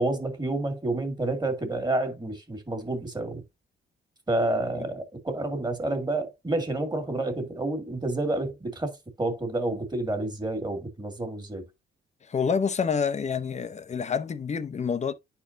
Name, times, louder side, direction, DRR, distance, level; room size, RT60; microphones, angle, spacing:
voice 1, 0.0-3.4 4.3-11.6, right 2 dB, 20° right, 2.1 m, -29 dB
voice 2, 12.2-15.1, left 6 dB, 35° left, 0.8 m, -28 dB
10.5 x 4.5 x 2.6 m
cardioid pair, 90°, 20 cm